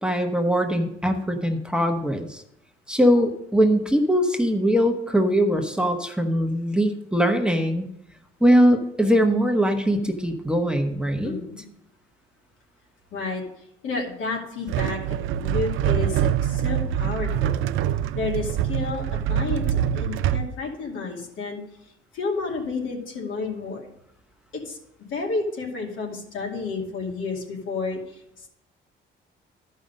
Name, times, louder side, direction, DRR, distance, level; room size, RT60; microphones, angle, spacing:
voice 1, 0.0-2.4 2.9-7.8 8.4-11.4, equal, 5° right, 4 dB, 1.0 m, -21 dB
voice 2, 11.2-11.6 13.1-13.4 13.8-15.2 15.4-17.6 18.1-21.6 22.1-23.9 24.5-24.8 25.1-28.2, left 3 dB, 80° left, -1 dB, 2.5 m, -31 dB
sound 1, 14.7-20.5, right 10 dB, 85° right, 0.4 m, -24 dB
12.0 x 5.5 x 5.1 m, 0.79 s
cardioid pair, 90°, 20 cm